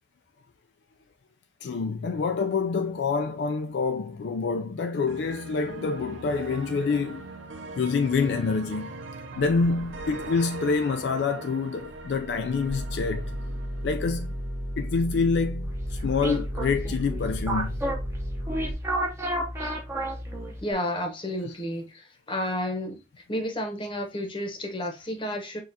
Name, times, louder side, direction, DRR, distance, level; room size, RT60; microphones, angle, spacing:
voice 1, 1.6-7.3 7.8-8.9 9.4-13.3 13.8-14.4 14.8-17.8, left 4 dB, 65° left, 0.3 m, -27 dB
sound 1, 5.1-15.1, right 2 dB, 90° right, 0.6 m, -41 dB
sound 2, 12.7-18.7, equal, 50° right, 1.3 m, -33 dB
sound 3, 15.6-20.7, right 1 dB, 15° right, 0.8 m, -32 dB
voice 2, 20.6-23.0 23.3-25.6, left 1 dB, 25° left, 0.9 m, -31 dB
6.3 x 2.4 x 2.7 m
head